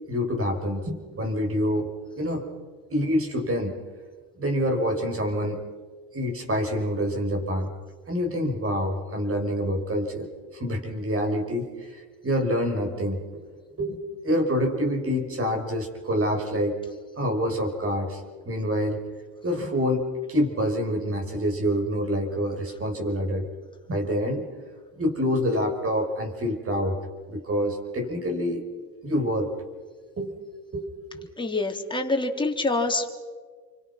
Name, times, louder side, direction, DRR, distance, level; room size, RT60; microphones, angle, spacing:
voice 1, 0.1-1.9 2.2-2.5 2.9-3.8 4.4-5.6 6.1-7.7 8.1-13.2 13.5-16.8 17.2-19.0 19.4-23.5 23.9-24.4 25.0-27.0 27.3-28.6 29.0-29.5 30.2-30.3 30.7-31.3, equal, 35° right, 3 dB, 6.6 m, -27 dB
voice 2, 31.4-33.1, left 2 dB, 10° left, 2 dB, 3.8 m, -26 dB
30.0 x 25.0 x 6.1 m, 1.5 s
supercardioid pair, 80°, 41 cm